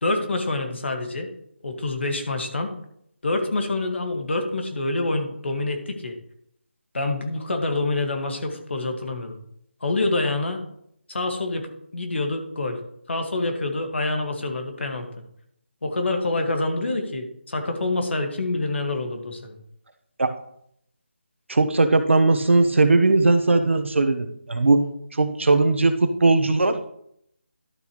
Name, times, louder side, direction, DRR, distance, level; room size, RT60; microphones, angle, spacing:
voice 1, 0.0-1.3 1.6-2.7 3.2-6.2 6.9-9.4 9.8-10.6 11.1-12.8 13.1-15.1 15.8-19.6, left 2 dB, 70° left, 4 dB, 1.9 m, -26 dB
voice 2, 21.5-24.8 25.1-26.8, right 3 dB, 80° right, 8 dB, 1.2 m, -19 dB
12.0 x 7.1 x 3.2 m, 0.72 s
figure-of-eight pair, 170°, 6 cm